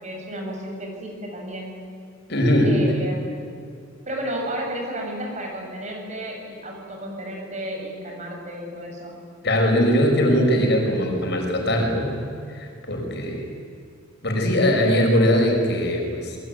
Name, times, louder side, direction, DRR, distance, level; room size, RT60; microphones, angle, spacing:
voice 1, 0.0-1.7 2.6-3.4 4.1-9.2, right 1 dB, 35° right, 1 dB, 7.0 m, -32 dB
voice 2, 2.3-3.0 9.4-12.2 12.5-13.4 14.2-16.4, equal, 55° left, 2 dB, 6.2 m, -20 dB
27.5 x 22.0 x 9.5 m, 2.4 s
head